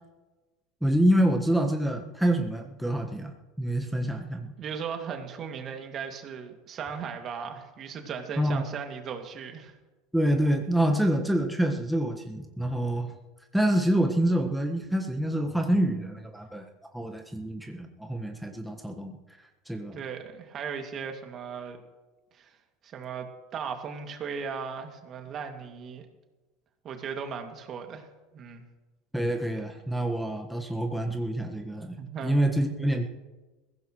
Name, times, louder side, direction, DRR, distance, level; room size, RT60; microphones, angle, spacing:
voice 1, 0.8-4.5 8.4-8.6 10.1-13.1 13.5-16.6 16.9-19.2 19.7-20.0 29.1-32.0 32.2-33.1, right 1 dB, 5° right, 3 dB, 1.4 m, -26 dB
voice 2, 4.6-9.8 19.9-21.8 22.3-22.5 22.8-26.1 26.8-28.1 28.3-28.6 32.0-32.4, right 6 dB, 40° right, 5 dB, 2.3 m, -37 dB
21.5 x 16.0 x 3.1 m, 1.2 s
hypercardioid pair, 80°, 0 cm